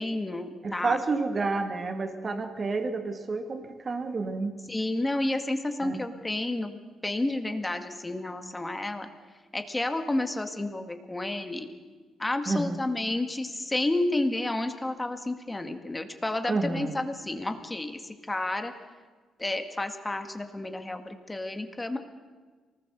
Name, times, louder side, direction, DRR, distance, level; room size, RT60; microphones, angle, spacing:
voice 1, 0.0-1.0 4.7-9.1 9.5-11.7 12.2-18.7 19.4-22.0, left 2 dB, 15° left, 7 dB, 2.0 m, -31 dB
voice 2, 0.6-4.5 5.8-6.0 12.5-12.8 16.5-17.0, right 3 dB, 35° right, 7 dB, 2.2 m, -29 dB
24.5 x 19.5 x 6.9 m, 1.4 s
cardioid pair, 90°, 0 cm